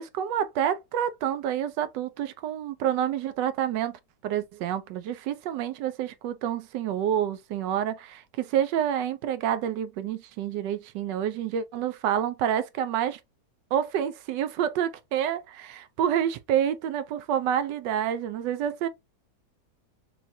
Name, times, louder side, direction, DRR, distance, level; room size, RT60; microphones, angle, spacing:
voice 1, 0.0-13.2 13.7-18.9, right 10 dB, 80° right, 1.2 m, -28 dB
5.6 x 2.4 x 2.6 m
omnidirectional pair, 1.9 m